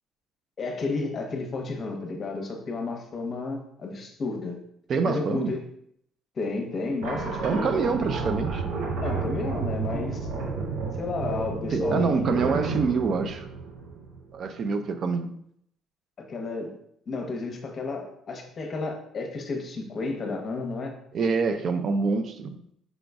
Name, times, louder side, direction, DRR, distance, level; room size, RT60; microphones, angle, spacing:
voice 1, 0.6-4.6 5.0-5.6 6.4-7.9 9.0-10.2 10.9-12.4 16.2-16.7 17.1-20.9, left 3 dB, 40° left, 3 dB, 0.9 m, -32 dB
voice 2, 4.9-5.5 7.4-8.7 11.7-13.5 14.3-15.3 21.1-22.6, right 4 dB, 50° right, 8 dB, 0.4 m, -26 dB
sound 1, 7.0-14.4, right 4 dB, 80° right, 0.8 m, -31 dB
4.9 x 3.8 x 2.3 m, 0.70 s
cardioid pair, 105°, 0 cm